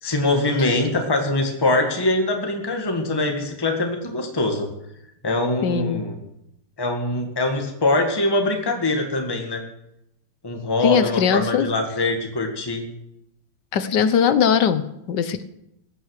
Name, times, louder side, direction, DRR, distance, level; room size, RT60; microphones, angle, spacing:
voice 1, 0.0-4.7 5.2-6.2 6.8-9.6 10.4-12.8, left 2 dB, 10° left, 3 dB, 1.7 m, -23 dB
voice 2, 5.6-6.0 10.8-11.7 13.7-15.4, left 7 dB, 65° left, 12 dB, 1.4 m, -20 dB
16.5 x 10.0 x 6.5 m, 0.81 s
omnidirectional pair, 2.2 m